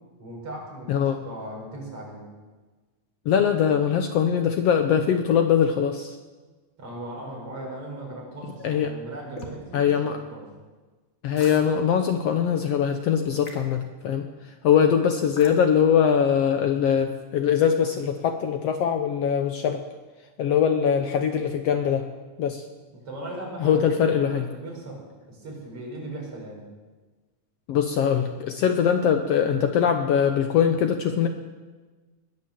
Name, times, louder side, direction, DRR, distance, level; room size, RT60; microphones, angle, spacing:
voice 1, 0.2-2.3 6.8-10.5 22.9-25.0 25.3-26.7, right 1 dB, 50° right, -2 dB, 5.6 m, -38 dB
voice 2, 3.3-6.2 8.6-8.9 9.7-10.2 11.2-14.3 14.6-19.8 20.4-22.1 22.4-22.6 23.6-24.5 27.7-31.3, left 8 dB, 70° left, 6 dB, 1.7 m, -22 dB
sound 1, 7.5-7.8 9.4-9.6 11.4-11.7 13.4-13.7 15.4-15.6, left 2 dB, 30° left, 2.3 m, -41 dB
20.5 x 9.7 x 7.3 m, 1.3 s
omnidirectional pair, 3.4 m